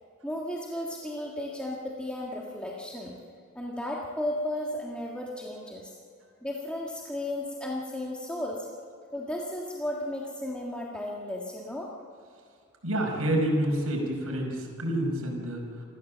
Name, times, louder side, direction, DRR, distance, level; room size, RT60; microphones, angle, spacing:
voice 1, 0.2-3.1 3.6-6.0 6.4-8.7 9.1-11.9, left 1 dB, 5° left, -3 dB, 1.7 m, -34 dB
voice 2, 12.8-15.6, right 1 dB, 75° right, 0 dB, 5.2 m, -28 dB
27.0 x 14.5 x 7.5 m, 2.4 s
head